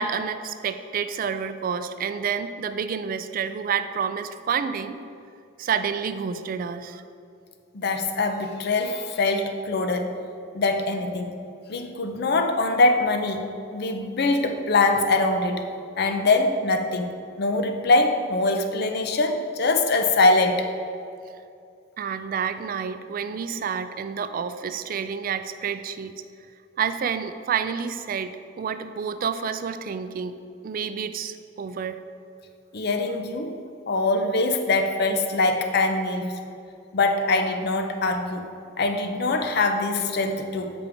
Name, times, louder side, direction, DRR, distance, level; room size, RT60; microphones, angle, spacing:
voice 1, 0.0-5.0 5.6-7.0 22.0-26.1 26.8-30.3 30.6-32.0, right 6 dB, 45° right, 11 dB, 0.3 m, -29 dB
voice 2, 7.7-10.2 10.5-11.4 11.7-13.5 13.7-15.6 16.0-20.7 32.7-33.6 33.9-36.4 36.9-38.5 38.8-40.7, left 2 dB, 55° left, 6 dB, 0.6 m, -23 dB
8.3 x 5.1 x 3.5 m, 2.5 s
head